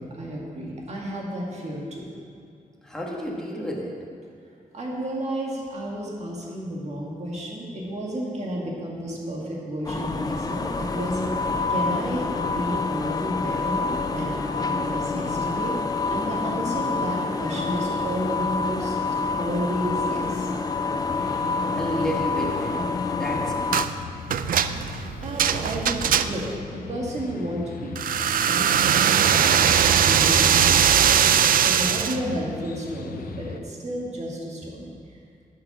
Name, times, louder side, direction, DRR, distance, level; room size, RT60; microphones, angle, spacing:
voice 1, 0.0-2.1 4.7-15.8 16.1-19.0 19.4-20.5 25.2-26.5 26.7-28.0 28.4-29.7 30.0-31.1 31.6-34.9, right 1 dB, 50° right, -3 dB, 1.9 m, -32 dB
voice 2, 2.8-4.0 21.7-23.6, equal, 5° left, -2 dB, 1.3 m, -31 dB
sound 1, 9.8-23.9, left 3 dB, 25° left, 0.4 m, -27 dB
sound 2, 21.1-33.6, left 6 dB, 90° left, 0.6 m, -39 dB
sound 3, 23.7-23.9 24.3-26.6 27.9-32.2, right 8 dB, 75° right, 0.4 m, -20 dB
11.0 x 5.9 x 5.9 m, 2.4 s
wide cardioid pair, 150°, 15 cm